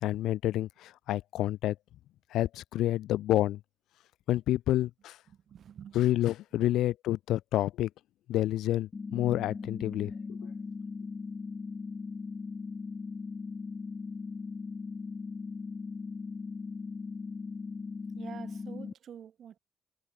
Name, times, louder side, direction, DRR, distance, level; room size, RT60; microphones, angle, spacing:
voice 1, 0.0-1.8 2.3-3.6 4.3-5.2 5.9-7.9 8.3-10.1, left 14 dB, 85° left, 0.3 m, -28 dB
voice 2, 5.5-6.0 6.5-6.7 18.1-19.6, right 9 dB, 60° right, 4.5 m, -47 dB
sound 1, 8.9-18.9, left 4 dB, 30° left, 0.5 m, -39 dB
cardioid pair, 90°, 0 cm